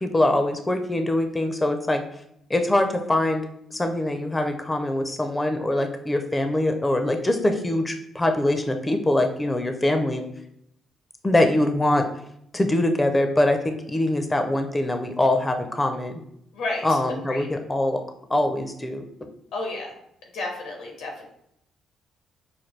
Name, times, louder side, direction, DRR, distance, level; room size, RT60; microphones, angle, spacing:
voice 1, 0.0-2.0 2.5-3.4 3.7-10.2 11.2-12.1 12.5-16.1 16.8-18.0 18.3-19.0, left 1 dB, 15° left, 6 dB, 0.4 m, -23 dB
voice 2, 16.5-17.0 17.3-17.5 19.5-19.9 20.3-21.3, left 2 dB, 90° left, 1 dB, 1.3 m, -31 dB
5.8 x 2.2 x 3.2 m, 0.75 s
cardioid pair, 90°, 0 cm